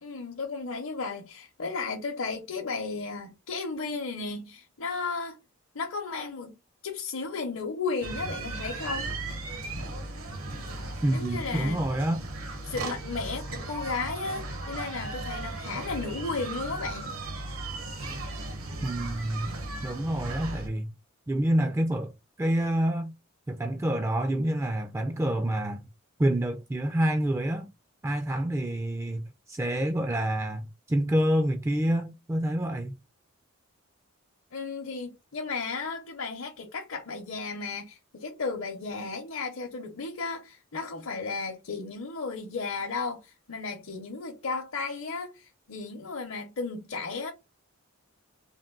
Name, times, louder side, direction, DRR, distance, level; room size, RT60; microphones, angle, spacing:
voice 1, 0.0-5.4 5.7-6.6 6.8-9.1 11.1-11.9 12.6-17.2 34.5-47.3, left 4 dB, 65° left, 0.8 m, -34 dB
sound 1, 8.0-20.7, right 2 dB, 80° right, 1.2 m, -36 dB
voice 2, 11.0-12.2 18.8-19.5 19.8-20.9 21.3-23.1 23.5-25.8 26.2-27.7 28.0-33.0, right 1 dB, 15° right, 0.3 m, -27 dB
3.5 x 2.6 x 3.7 m
head